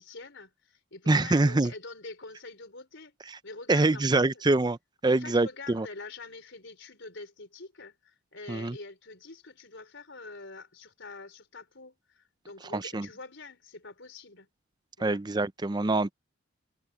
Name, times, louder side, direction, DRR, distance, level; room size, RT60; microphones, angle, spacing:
voice 1, 0.0-3.2 3.4-4.4 5.0-14.5 15.0-15.2, left 3 dB, 55° left, 5.0 m, -45 dB
voice 2, 1.1-1.7 3.7-4.8 5.0-5.9 8.5-8.8 12.7-13.1 15.0-16.1, right 2 dB, 20° right, 0.5 m, -25 dB
head